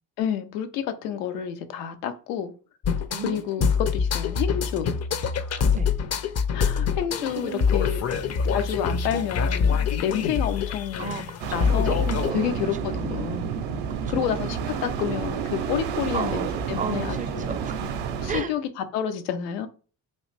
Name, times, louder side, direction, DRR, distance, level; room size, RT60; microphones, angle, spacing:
voice 1, 0.2-2.5 3.2-4.9 6.5-8.0 8.5-11.1 11.5-12.0 12.3-13.4 14.1-17.5 18.2-19.7, left 9 dB, 85° left, 0.5 m, -29 dB
sound 1, 2.8-12.3, left 6 dB, 35° left, 0.5 m, -25 dB
voice 2, 3.1-3.7 5.7-5.9 6.6-6.7 7.2-7.7 8.1-8.2 11.0-12.8 13.1-13.5 13.9-14.4 16.1-18.0 18.3-18.5, right 6 dB, 20° right, 0.4 m, -35 dB
sound 2, 11.4-18.4, right 7 dB, 60° right, 0.6 m, -30 dB
3.0 x 2.4 x 3.2 m
hypercardioid pair, 45°, 46 cm